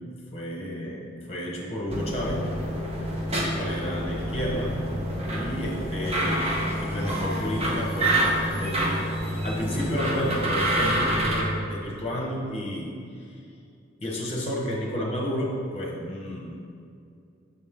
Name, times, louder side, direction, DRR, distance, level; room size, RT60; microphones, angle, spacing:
voice 1, 0.0-2.5 3.4-4.8 5.3-6.5 6.8-12.9 13.2-13.4 14.0-16.5, equal, 30° left, -2 dB, 1.1 m, -31 dB
sound 1, 1.9-11.4, right 1 dB, 30° right, 0.8 m, -27 dB
6.8 x 4.3 x 3.6 m, 2.4 s
head